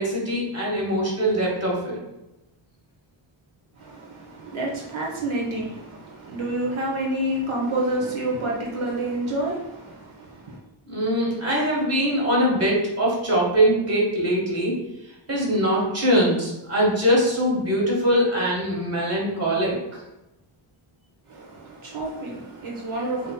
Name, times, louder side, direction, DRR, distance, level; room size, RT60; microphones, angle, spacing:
voice 1, 0.0-2.0 10.9-14.8 15.3-19.7, equal, 30° right, -4 dB, 1.5 m, -22 dB
voice 2, 3.8-10.6 21.3-23.3, right 1 dB, 80° right, -2 dB, 1.0 m, -29 dB
7.1 x 2.8 x 2.2 m, 0.91 s
wide cardioid pair, 140°, 49 cm